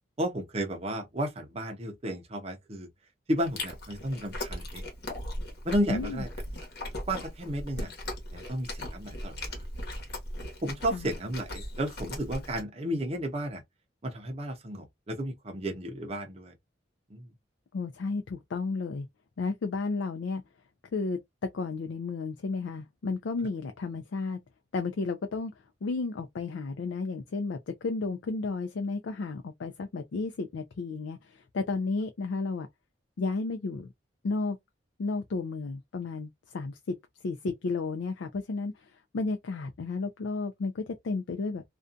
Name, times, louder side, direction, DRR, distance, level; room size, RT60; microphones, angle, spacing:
voice 1, 0.2-2.9 3.3-4.8 5.6-6.3 7.1-7.9 8.3-9.6 10.6-13.6 14.0-16.5 17.1-17.3, right 1 dB, 35° right, 0.6 m, -33 dB
Chewing mastication, 3.4-12.6, left 1 dB, 60° left, 1.1 m, -38 dB
voice 2, 5.9-6.2 10.9-11.1 17.7-19.1 19.4-20.4 20.9-24.4 24.7-25.5 25.8-32.7 33.2-33.9 34.2-34.6 35.0-37.0 37.2-41.6, left 3 dB, 90° left, 0.4 m, -32 dB
2.5 x 2.2 x 2.4 m
head